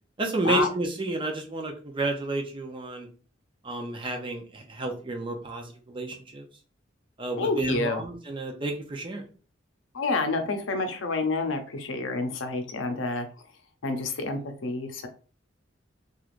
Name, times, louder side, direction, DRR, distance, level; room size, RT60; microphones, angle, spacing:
voice 1, 0.2-3.1 3.6-6.4 7.2-9.2, right 2 dB, 25° right, 3 dB, 0.5 m, -31 dB
voice 2, 7.4-8.0 9.9-13.3 13.8-15.1, left 3 dB, 85° left, 6 dB, 0.6 m, -28 dB
3.1 x 2.4 x 2.5 m, 0.39 s
head